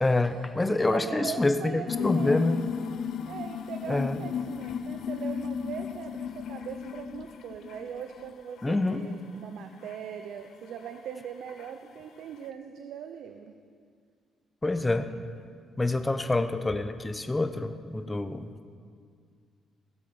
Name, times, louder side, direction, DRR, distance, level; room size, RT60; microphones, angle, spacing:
voice 1, 0.0-2.6 3.9-4.2 8.6-9.1 14.6-15.1 15.8-18.5, left 2 dB, 15° left, 10 dB, 0.8 m, -27 dB
voice 2, 0.7-2.4 3.3-13.5, right 8 dB, 75° right, 7 dB, 0.6 m, -40 dB
sound 1, 1.9-8.3 8.6-9.1 9.9-10.0 10.8-10.9 11.5-11.7, left 7 dB, 65° left, 0.5 m, -34 dB
17.0 x 7.3 x 6.0 m, 2.1 s
cardioid pair, 90°, 0 cm